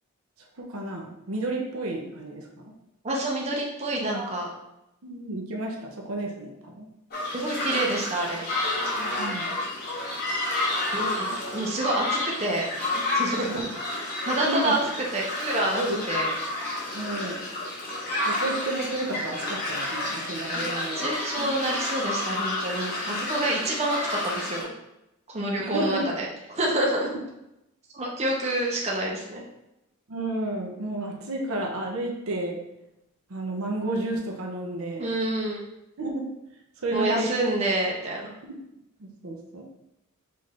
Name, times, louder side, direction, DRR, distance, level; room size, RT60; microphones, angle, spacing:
voice 1, 0.6-2.7 4.1-4.3 5.0-6.9 9.0-9.5 13.4-13.6 14.4-14.8 15.8-16.0 16.9-17.4 18.2-21.0 21.4-21.5 23.0-23.1 25.6-26.1 30.1-32.6 33.3-35.1 36.0-36.3 36.8-37.3 38.4-38.6 39.0-39.6, right 1 dB, 70° right, 0 dB, 0.7 m, -31 dB
voice 2, 3.0-4.5 7.3-8.4 10.9-12.7 12.9-13.5 14.3-14.8 15.1-16.3 20.5-20.7 21.0-24.7 25.3-27.1 27.9-29.4 35.0-35.6 36.9-38.3, right 1 dB, 30° right, -2 dB, 0.7 m, -28 dB
sound 1, 7.1-24.6, left 2 dB, 45° left, 1.3 m, -30 dB
5.4 x 2.6 x 3.3 m, 0.87 s
head